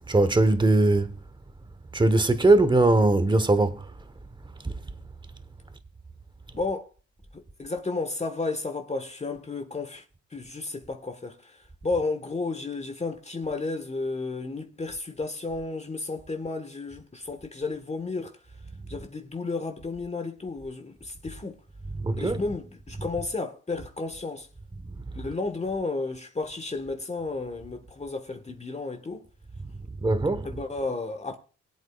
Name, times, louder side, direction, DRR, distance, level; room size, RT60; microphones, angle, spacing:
voice 1, 0.1-1.1 1.9-3.8 4.6-4.7 22.0-22.4 23.0-23.1 24.8-24.9 30.0-30.6, right 2 dB, 15° right, 1.2 m, -21 dB
voice 2, 6.5-6.9 7.3-10.0 10.3-18.3 18.9-21.6 22.2-24.5 25.1-29.3 30.4-31.4, left 3 dB, 20° left, 1.4 m, -32 dB
23.0 x 8.1 x 2.4 m
cardioid pair, 90°, 30 cm